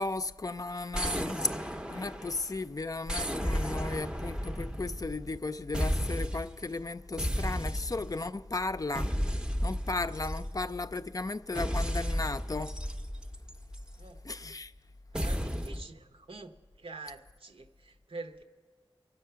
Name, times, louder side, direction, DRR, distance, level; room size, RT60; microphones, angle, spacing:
voice 1, 0.0-9.3 9.6-12.8 14.2-14.7, left 3 dB, 40° left, 0.4 m, -35 dB
sound 1, 0.9-2.5 3.1-5.4 5.7-6.6 7.2-8.2 8.9-10.8 11.6-14.0 15.1-15.9, equal, 10° right, 0.6 m, -33 dB
voice 2, 14.0-14.5 15.1-18.4, right 3 dB, 75° right, 0.9 m, -46 dB
23.5 x 7.9 x 5.7 m
wide cardioid pair, 60°, 9 cm